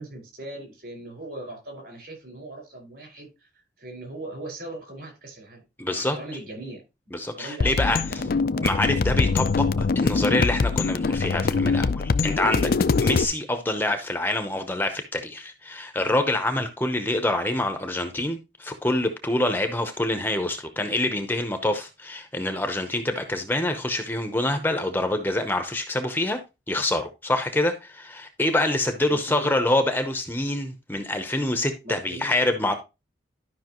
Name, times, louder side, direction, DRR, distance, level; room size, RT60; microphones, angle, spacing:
voice 1, 0.0-3.5 3.8-5.6 5.9-6.8 7.4-8.7 29.1-29.6 31.8-32.3, right 2 dB, 55° right, 5.2 m, -39 dB
voice 2, 5.8-6.2 7.1-8.0 8.6-12.7 13.0-26.4 26.7-32.8, left 1 dB, 10° left, 0.7 m, -26 dB
sound 1, 7.6-13.2, left 4 dB, 50° left, 0.4 m, -23 dB
12.0 x 5.6 x 3.0 m
head